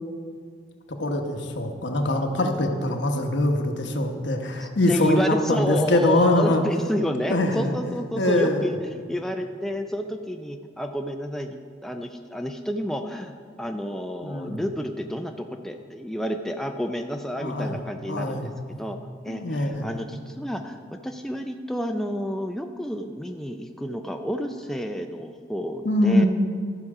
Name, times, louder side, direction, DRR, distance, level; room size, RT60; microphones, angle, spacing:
voice 1, 0.9-6.6 7.3-7.8 8.2-8.7 14.2-14.6 17.4-17.8 18.1-18.5 19.3-19.9 25.8-26.3, left 1 dB, 70° left, 4 dB, 1.0 m, -23 dB
voice 2, 4.6-18.5 18.8-19.0 19.2-26.2, equal, ahead, 4 dB, 0.3 m, -30 dB
14.0 x 6.0 x 4.8 m, 2.1 s
head